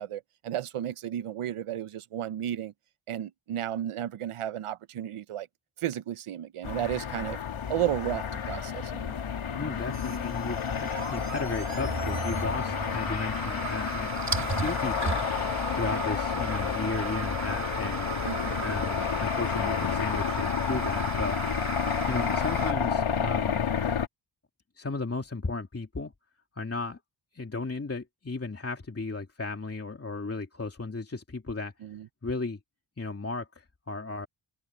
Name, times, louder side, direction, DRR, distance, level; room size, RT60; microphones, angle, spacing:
voice 1, 0.0-2.7 3.1-5.5 5.8-7.4 7.7-9.1 15.8-15.9 18.2-18.7 21.9-22.2 31.8-32.1, right 11 dB, 85° right, 1.0 m, -33 dB
sound 1, 6.6-24.1, left 7 dB, 70° left, 3.0 m, -30 dB
voice 2, 9.6-14.1 14.5-15.5 15.7-18.1 18.6-21.6 22.1-23.7 24.8-26.1 26.6-27.0 27.3-31.7 32.2-32.6 33.0-34.3, left 3 dB, 30° left, 2.8 m, -35 dB
sound 2, 9.8-22.7, right 5 dB, 35° right, 2.9 m, -36 dB
cardioid pair, 85°, 50 cm